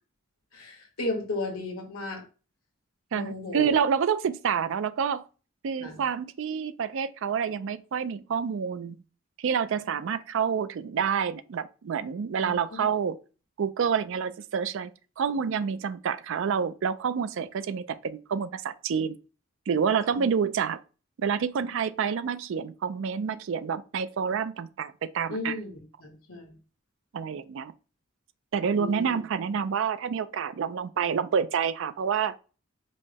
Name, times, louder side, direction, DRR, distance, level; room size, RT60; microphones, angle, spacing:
voice 1, 0.5-2.2 3.1-3.7 5.8-6.0 12.4-12.9 20.1-20.3 25.3-26.5 28.7-29.1, left 2 dB, 85° left, 1.3 m, -35 dB
voice 2, 3.1-5.2 5.6-9.0 9.4-13.2 13.6-14.9 15.2-19.2 19.7-20.8 21.2-25.6 27.1-27.7 28.5-32.3, right 7 dB, 60° right, 0.4 m, -28 dB
5.3 x 2.1 x 3.3 m
head